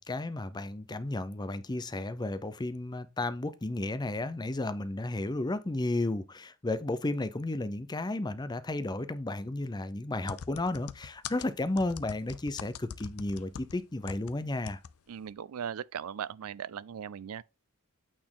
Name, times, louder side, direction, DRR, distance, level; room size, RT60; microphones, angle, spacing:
voice 1, 0.0-14.8, left 2 dB, 20° left, 0.6 m, -33 dB
sound 1, 10.3-14.3 14.7-14.9 15.2-15.3, left 7 dB, 80° left, 0.5 m, -43 dB
voice 2, 15.1-17.4, right 8 dB, 80° right, 0.4 m, -38 dB
8.8 x 4.3 x 3.7 m
head